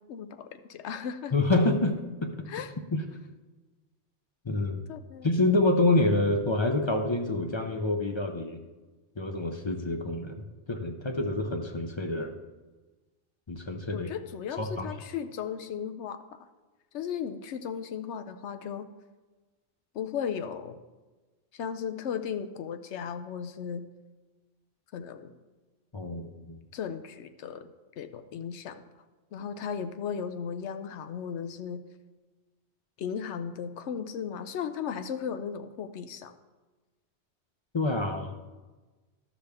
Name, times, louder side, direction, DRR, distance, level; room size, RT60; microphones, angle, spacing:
voice 1, 0.0-1.3 2.5-2.7 4.9-5.3 13.9-16.5 16.9-18.9 19.9-20.8 21.5-23.9 24.9-25.3 26.7-28.8 29.3-31.9 33.0-36.4, left 7 dB, 75° left, 9 dB, 0.9 m, -36 dB
voice 2, 1.3-2.5 2.9-3.0 4.4-4.8 5.2-8.6 9.2-12.3 13.5-14.1 14.6-14.9 25.9-26.6 37.7-38.3, left 2 dB, 35° left, 4 dB, 0.5 m, -27 dB
12.0 x 6.6 x 3.4 m, 1.3 s
omnidirectional pair, 1.2 m